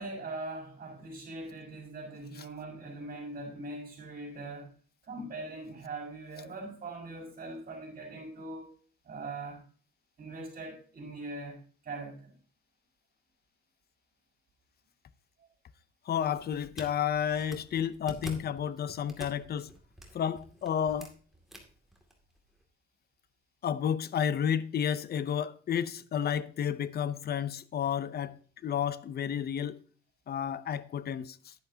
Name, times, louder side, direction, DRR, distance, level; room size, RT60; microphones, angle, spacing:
voice 1, 0.0-4.7 5.0-8.7 9.0-9.6 10.2-12.3, right 2 dB, 50° right, 5.3 m, -41 dB
voice 2, 16.1-19.7 20.1-21.1 23.6-29.8 30.3-31.5, left 8 dB, 55° left, 0.6 m, -31 dB
sound 1, 16.1-22.6, right 1 dB, ahead, 2.3 m, -49 dB
10.5 x 10.5 x 2.8 m
cardioid pair, 90°, 20 cm